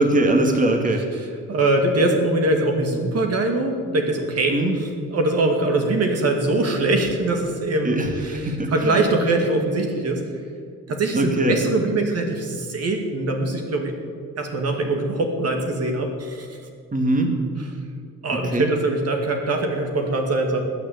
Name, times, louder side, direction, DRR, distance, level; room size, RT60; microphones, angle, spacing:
voice 1, 0.0-1.0 4.5-4.7 7.8-9.1 11.1-11.6 16.9-17.3 18.5-18.7, right 2 dB, 25° right, 3 dB, 2.2 m, -21 dB
voice 2, 1.1-10.2 10.9-13.9 14.4-16.6 17.6-17.7 18.2-20.6, right 2 dB, 55° right, 3 dB, 2.3 m, -23 dB
20.0 x 6.6 x 8.6 m, 2.2 s
cardioid pair, 90°, 30 cm